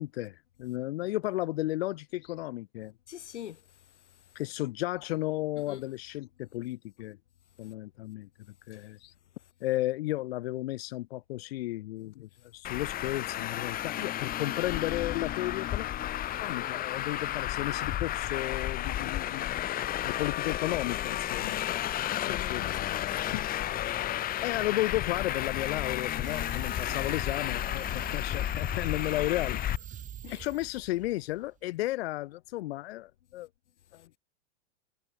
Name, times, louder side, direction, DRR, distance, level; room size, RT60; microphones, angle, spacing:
voice 1, 0.0-2.9 4.3-7.2 7.6-8.3 8.7-9.1 9.6-15.9 16.4-19.5 19.8-21.8 22.2-22.7 23.3-23.4 24.4-29.7 30.3-33.5 33.9-34.1, left 17 dB, 60° left, 0.9 m, -34 dB
voice 2, 3.1-3.6 5.7-5.8 22.2-23.4 23.9-24.2 30.2-30.5, left 11 dB, 85° left, 2.1 m, -44 dB
Traffic noise roadway noise, 12.6-29.8, left 13 dB, 25° left, 2.2 m, -32 dB
sound 1, 26.2-31.6, right 10 dB, 20° right, 4.4 m, -46 dB
hypercardioid pair, 140°, 34 cm